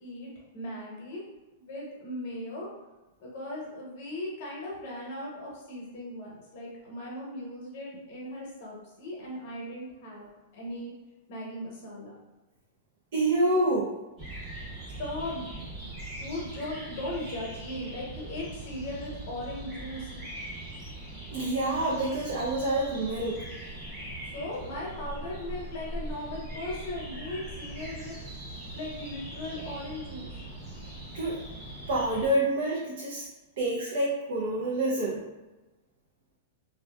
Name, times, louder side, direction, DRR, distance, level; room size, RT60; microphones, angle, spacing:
voice 1, 0.0-1.2 1.6-2.7 3.2-10.9 11.3-12.1 15.0-15.9 16.2-20.1 24.3-28.2 28.7-30.3, left 1 dB, 40° left, -4 dB, 0.8 m, -38 dB
voice 2, 13.1-13.9 21.3-23.5 31.1-31.4 31.9-33.3 33.6-35.2, right 1 dB, 60° right, -4 dB, 0.4 m, -27 dB
sound 1, 14.2-32.3, right 1 dB, 20° right, 0.8 m, -41 dB
2.6 x 2.1 x 2.2 m, 1.1 s
supercardioid pair, 170°, 0 cm